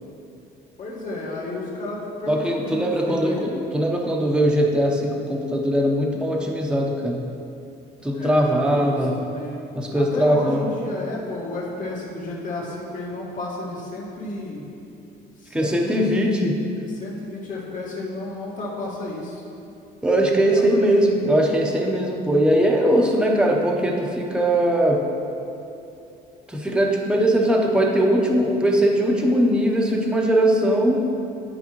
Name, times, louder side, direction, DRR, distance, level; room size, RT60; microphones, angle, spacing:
voice 1, 0.8-3.6 8.1-9.6 9.9-14.6 15.4-16.4 16.9-19.4 20.4-20.9, left 2 dB, 50° left, -4 dB, 1.7 m, -32 dB
voice 2, 2.3-7.2 8.0-9.2 9.7-10.6 15.5-16.6 20.0-25.0 26.5-31.0, right 1 dB, 5° right, -1 dB, 0.8 m, -20 dB
11.0 x 4.8 x 3.1 m, 2.7 s
cardioid pair, 110°, 17 cm